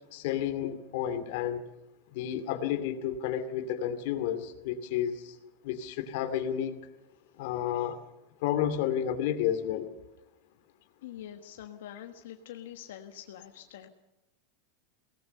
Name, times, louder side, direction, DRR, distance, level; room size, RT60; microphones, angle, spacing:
voice 1, 0.1-1.6 2.1-5.4 5.6-6.8 7.4-8.0 8.4-9.9, left 10 dB, 55° left, 9 dB, 2.4 m, -31 dB
voice 2, 11.0-13.9, left 10 dB, 85° left, 5 dB, 1.4 m, -45 dB
22.5 x 18.5 x 6.7 m, 1.0 s
supercardioid pair, 170°, 0 cm